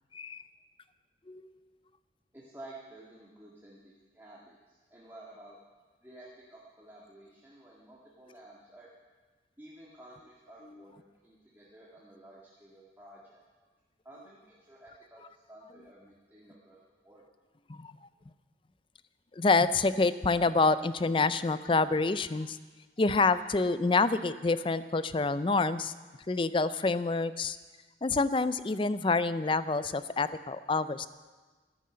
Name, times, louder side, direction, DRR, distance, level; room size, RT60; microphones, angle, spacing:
voice 1, 2.3-5.6 6.0-8.9 9.6-13.4 14.0-16.8 17.0-17.2, right 1 dB, 10° right, -6 dB, 1.8 m, -52 dB
voice 2, 19.3-22.6 23.0-25.9 26.3-27.6 28.0-31.1, left 3 dB, 25° left, 14 dB, 0.4 m, -27 dB
13.5 x 11.0 x 7.6 m, 1.3 s
head